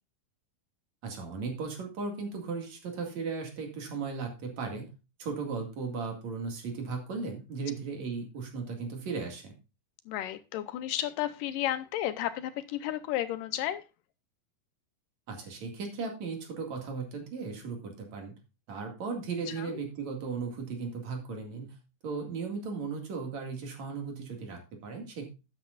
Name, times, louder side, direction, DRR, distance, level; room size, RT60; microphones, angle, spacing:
voice 1, 1.0-4.9 5.2-9.5 15.3-18.3 18.7-21.8 22.0-25.3, right 4 dB, 50° right, 3.2 m, -36 dB
voice 2, 10.1-13.8 19.6-19.7, left 12 dB, 75° left, 2.2 m, -32 dB
12.0 x 10.0 x 2.5 m
omnidirectional pair, 4.3 m